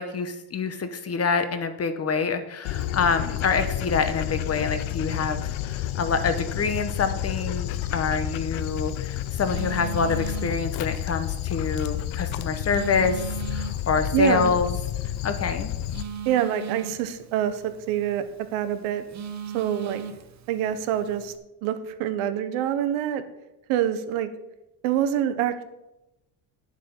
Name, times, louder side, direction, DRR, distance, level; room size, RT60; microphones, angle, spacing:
voice 1, 0.0-14.8 15.2-15.7, left 5 dB, 30° left, 9 dB, 0.9 m, -26 dB
Dog, 2.6-16.0, left 12 dB, 75° left, 0.7 m, -30 dB
Telephone, 8.5-21.4, right 8 dB, 35° right, 0.8 m, -40 dB
voice 2, 14.1-14.5 16.2-18.2 18.5-19.1 19.5-20.0 20.5-21.3 21.6-23.2 23.7-24.3 24.8-25.6, right 10 dB, 90° right, 10 dB, 1.1 m, -25 dB
9.4 x 7.4 x 5.4 m, 0.94 s
cardioid pair, 130°, 49 cm